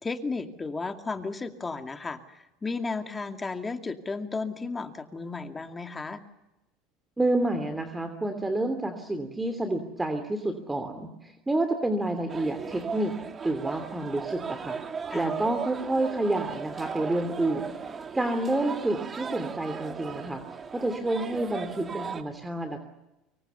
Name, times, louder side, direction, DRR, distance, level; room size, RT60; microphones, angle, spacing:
voice 1, 0.0-6.2 15.1-15.3, left 4 dB, 20° left, 6 dB, 2.4 m, -34 dB
voice 2, 7.2-13.1 13.4-14.8 15.1-20.4 20.7-22.8, right 2 dB, 10° right, 8 dB, 2.9 m, -29 dB
sound 1, 12.3-22.2, right 5 dB, 30° right, 2.3 m, -37 dB
25.0 x 23.5 x 7.0 m, 0.95 s
supercardioid pair, 105°, 0 cm